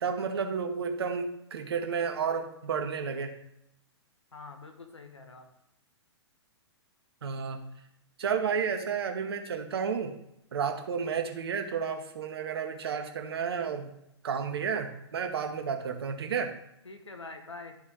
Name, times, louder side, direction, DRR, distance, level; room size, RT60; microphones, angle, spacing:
voice 1, 0.0-3.3 7.2-7.6 8.2-10.1 10.5-13.9 14.2-16.5, right 6 dB, 60° right, 5 dB, 1.0 m, -31 dB
voice 2, 4.3-5.5 16.8-17.8, left 3 dB, 80° left, 6 dB, 1.3 m, -45 dB
11.5 x 4.2 x 3.7 m, 0.81 s
figure-of-eight pair, 115°, 15 cm